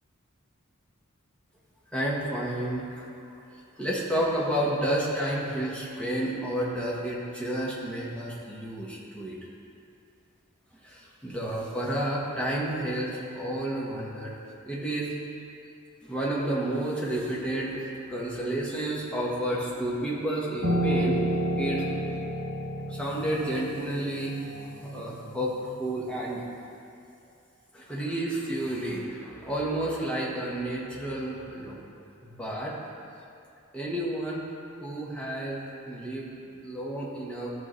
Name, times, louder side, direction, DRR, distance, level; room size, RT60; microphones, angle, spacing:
voice 1, 1.9-3.0 3.8-9.4 10.8-14.3 14.7-15.1 16.1-21.2 21.6-21.9 22.9-24.4 24.8-25.5 25.8-26.4 27.7-31.8 32.2-32.7 33.7-34.4 34.8-36.3 36.5-37.5, right 1 dB, 5° left, -5 dB, 1.2 m, -31 dB
Piano, 20.6-25.9, right 1 dB, 65° right, 1.7 m, -30 dB
13.5 x 4.8 x 3.2 m, 2.6 s
head